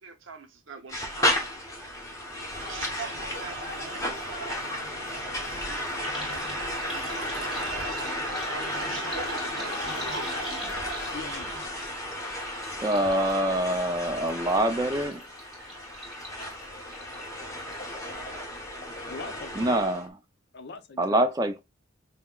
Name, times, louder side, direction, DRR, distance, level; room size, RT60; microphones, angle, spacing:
voice 1, 0.0-1.9 2.6-4.0 5.4-10.6, right 5 dB, 65° right, 0.7 m, -44 dB
sound 1, 0.9-20.0, left 1 dB, 15° left, 0.9 m, -34 dB
sound 2, 2.5-11.7, right 2 dB, 45° right, 1.2 m, -40 dB
sound 3, 3.1-3.2 3.5-18.1 18.5-19.0 19.2-19.3, left 1 dB, ahead, 1.7 m, -45 dB
voice 2, 11.1-11.8 15.6-15.7 17.5-17.7 19.1-19.8 20.5-21.2, left 4 dB, 50° left, 0.6 m, -42 dB
voice 3, 12.8-15.2 19.6-20.1 21.0-21.6, right 1 dB, 15° right, 0.4 m, -25 dB
5.5 x 2.1 x 2.3 m
head